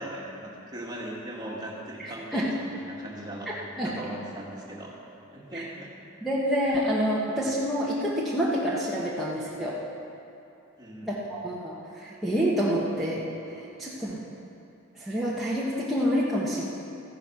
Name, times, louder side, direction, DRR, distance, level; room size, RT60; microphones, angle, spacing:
voice 1, 0.0-3.5 3.8-5.0 5.3-5.9 10.8-11.2, right 1 dB, 20° right, -3 dB, 1.9 m, -39 dB
voice 2, 2.0-2.5 3.8-3.9 5.5-5.6 6.2-9.8 11.0-13.3 13.5-14.2 15.0-16.6, equal, ahead, -7 dB, 1.4 m, -28 dB
14.5 x 10.5 x 6.0 m, 2.8 s
head